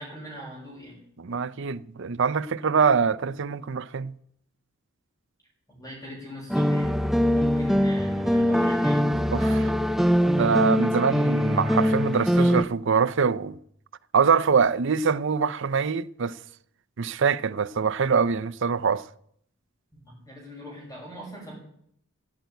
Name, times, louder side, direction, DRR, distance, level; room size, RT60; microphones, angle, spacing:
voice 1, 0.0-1.0 5.7-9.1 19.9-21.5, equal, 15° left, 6.4 m, -41 dB
voice 2, 1.2-4.1 9.3-9.7 10.2-13.6 14.1-16.4 17.0-19.1, right 5 dB, 60° right, 0.6 m, -24 dB
sound 1, 6.5-12.6, equal, ahead, 0.5 m, -22 dB
14.5 x 8.2 x 9.1 m
head